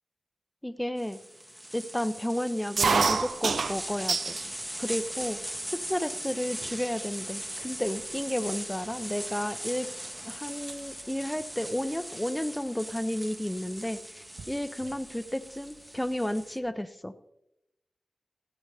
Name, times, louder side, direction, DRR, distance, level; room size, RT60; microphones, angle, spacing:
voice 1, 0.6-1.2 1.7-4.4 4.8-5.4 5.7-9.9 10.2-17.3, left 1 dB, 10° left, 11 dB, 0.6 m, -32 dB
sound 1, 1.0-16.6, right 1 dB, 15° right, 0.9 m, -40 dB
sound 2, 2.8-4.5 4.9-5.6 6.2-6.3 6.6-7.0 7.6-7.7 7.9-10.2 10.5-10.8 12.1-12.4 13.5-13.6 13.8-13.9 14.2-15.1, right 4 dB, 85° right, 0.4 m, -29 dB
14.5 x 7.9 x 3.3 m, 0.89 s
cardioid pair, 45°, 0 cm